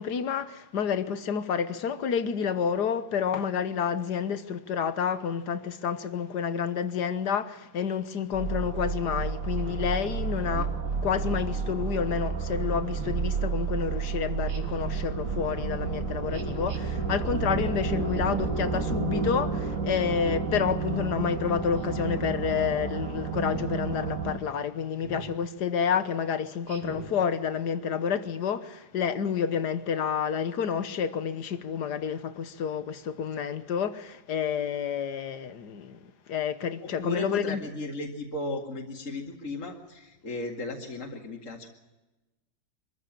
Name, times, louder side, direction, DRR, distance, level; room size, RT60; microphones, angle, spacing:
voice 1, 0.0-10.7 11.0-36.0 36.3-37.6, left 7 dB, 60° left, 1.6 m, -29 dB
sound 1, 8.3-24.4, right 5 dB, 45° right, 2.1 m, -31 dB
Speech synthesizer, 9.6-9.9 11.0-11.5 13.0-13.3 14.5-15.0 16.3-16.8 18.1-18.6 19.9-20.4 21.8-22.2 23.4-23.7 25.0-25.4 26.7-27.2, right 3 dB, 90° right, 3.3 m, -42 dB
voice 2, 36.8-41.7, left 2 dB, 40° left, 2.5 m, -36 dB
25.0 x 14.5 x 8.7 m
omnidirectional pair, 2.2 m